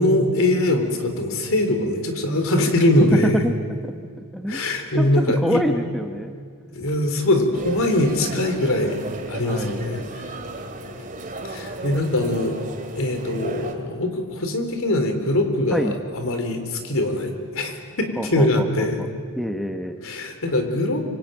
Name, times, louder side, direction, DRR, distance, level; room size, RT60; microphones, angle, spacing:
voice 1, 0.0-3.4 4.5-5.6 6.7-10.0 11.4-12.6 13.0-19.0 20.0-21.0, left 1 dB, 65° left, 6 dB, 3.8 m, -22 dB
voice 2, 3.1-3.5 3.8-4.6 4.9-6.4 9.4-9.8 15.7-16.0 18.2-18.9 19.4-20.0, equal, ahead, 5 dB, 1.1 m, -26 dB
sound 1, 7.5-13.7, right 2 dB, 35° right, 2.9 m, -34 dB
25.5 x 25.0 x 9.2 m, 2.1 s
head